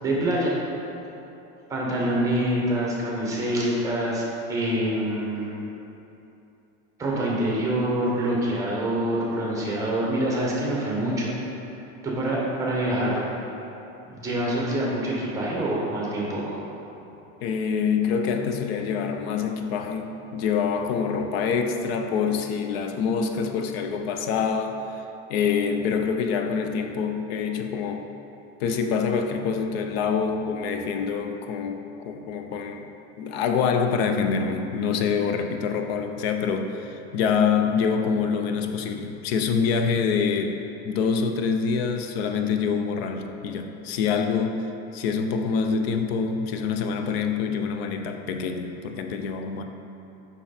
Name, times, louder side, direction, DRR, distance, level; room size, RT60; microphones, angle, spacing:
voice 1, 0.0-0.6 1.7-4.2 4.5-5.5 7.0-11.3 12.0-13.3 14.0-16.6, right 1 dB, 10° right, -4 dB, 1.0 m, -25 dB
voice 2, 17.4-24.9 25.3-28.1 28.6-32.9 33.2-44.6 44.9-49.6, left 6 dB, 85° left, 5 dB, 0.6 m, -26 dB
5.8 x 5.5 x 4.2 m, 2.9 s
cardioid pair, 170°, 30 cm